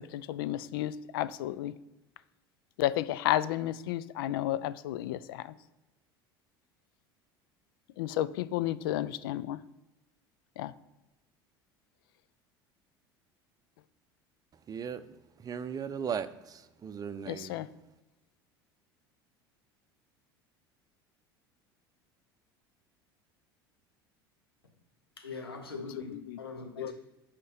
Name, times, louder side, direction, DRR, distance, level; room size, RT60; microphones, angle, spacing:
voice 1, 0.0-1.7 2.8-5.4 8.0-9.6 10.6-10.7 17.3-17.7 26.3-26.4 26.8-26.9, left 13 dB, 70° left, 0.4 m, -32 dB
voice 2, 14.7-17.7, right 7 dB, 30° right, 0.7 m, -38 dB
voice 3, 25.2-26.9, left 4 dB, 90° left, 1.1 m, -41 dB
8.3 x 5.1 x 4.3 m
hypercardioid pair, 70°, 12 cm